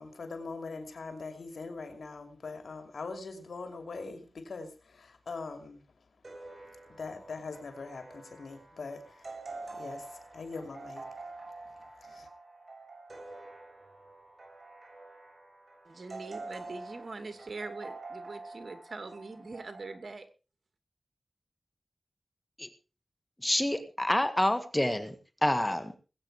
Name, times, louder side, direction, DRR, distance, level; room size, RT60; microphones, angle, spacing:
voice 1, 0.0-6.1 6.5-11.3 11.6-12.3, left 4 dB, 90° left, 6 dB, 2.7 m, -43 dB
sound 1, 6.2-20.0, right 3 dB, 50° right, 7.1 m, -47 dB
voice 2, 15.9-20.3, right 3 dB, 65° right, 8 dB, 2.5 m, -43 dB
voice 3, 23.4-25.1 25.4-25.9, left 1 dB, 15° left, 9 dB, 1.9 m, -27 dB
20.5 x 8.9 x 4.7 m, 0.34 s
cardioid pair, 55°, 0 cm